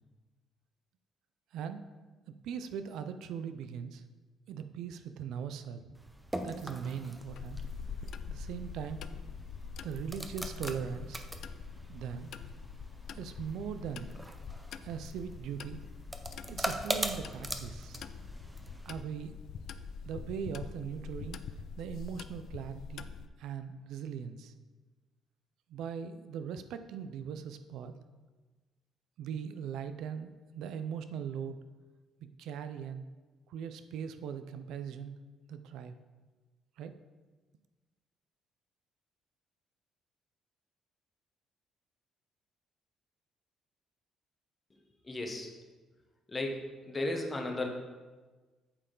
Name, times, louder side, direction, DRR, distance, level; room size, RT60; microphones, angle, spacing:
voice 1, 2.4-4.0 4.5-6.0 6.4-7.6 8.3-9.0 9.8-11.2 11.9-12.3 13.2-14.1 14.8-15.8 16.5-18.0 18.9-19.4 20.0-21.4 21.8-23.1 23.4-24.5 25.7-27.9 29.2-31.6 32.4-33.0 33.5-35.2 35.5-35.9 36.8-36.9, right 7 dB, 75° right, 10 dB, 0.4 m, -40 dB
sound 1, 6.0-19.0, right 1 dB, 5° right, 0.5 m, -42 dB
sound 2, 7.3-23.3, left 6 dB, 55° left, 0.3 m, -44 dB
voice 2, 45.0-45.5 46.3-47.7, left 2 dB, 20° left, 2 dB, 1.0 m, -35 dB
8.6 x 6.7 x 3.8 m, 1.3 s
cardioid pair, 165°, 0 cm